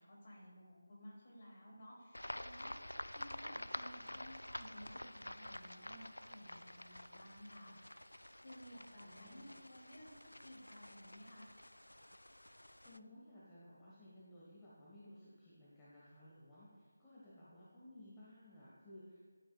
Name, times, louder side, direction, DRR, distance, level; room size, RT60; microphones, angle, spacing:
voice 1, 0.0-7.8 8.4-11.5, equal, 40° left, -3 dB, 2.6 m, -56 dB
sound 1, 2.1-13.0, left 1 dB, 85° left, 0.3 m, -49 dB
voice 2, 9.0-9.4 12.8-19.2, left 1 dB, 10° left, -9 dB, 1.3 m, -58 dB
10.5 x 8.6 x 2.3 m, 1.5 s
figure-of-eight pair, 160°, 0 cm